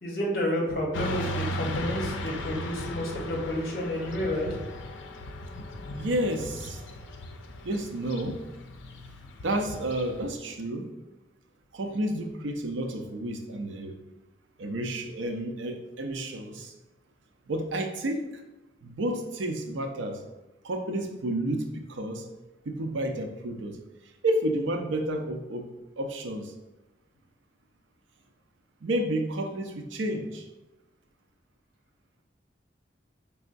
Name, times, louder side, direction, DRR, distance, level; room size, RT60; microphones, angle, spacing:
voice 1, 0.0-4.5, left 1 dB, 50° left, -1 dB, 1.0 m, -30 dB
Motorcycle / Traffic noise roadway noise, 0.9-10.3, left 1 dB, 85° left, 0.5 m, -37 dB
voice 2, 5.9-6.8 7.6-8.4 9.4-10.9 11.7-13.9 14.6-16.7 17.5-18.4 18.8-20.2 20.6-22.2 22.6-23.8 24.2-25.7 26.0-26.5 28.8-30.4, right 1 dB, 85° right, 5 dB, 0.5 m, -31 dB
5.3 x 3.4 x 2.5 m, 1.0 s
head